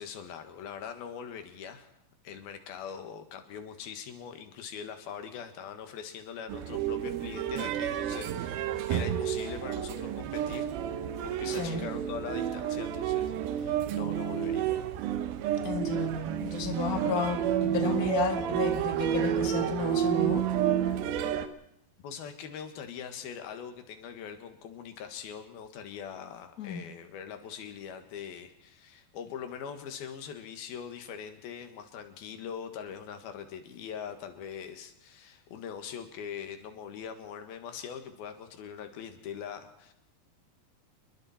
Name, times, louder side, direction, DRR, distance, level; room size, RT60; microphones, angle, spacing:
voice 1, 0.0-1.9 2.2-10.7 11.2-14.8 22.0-39.9, left 7 dB, 90° left, 7 dB, 3.6 m, -42 dB
sound 1, 6.5-21.5, right 10 dB, 85° right, 2.9 m, -30 dB
voice 2, 11.4-11.9 15.6-20.5 26.6-26.8, left 5 dB, 60° left, 6 dB, 0.9 m, -32 dB
28.0 x 21.5 x 4.3 m, 0.78 s
omnidirectional pair, 4.2 m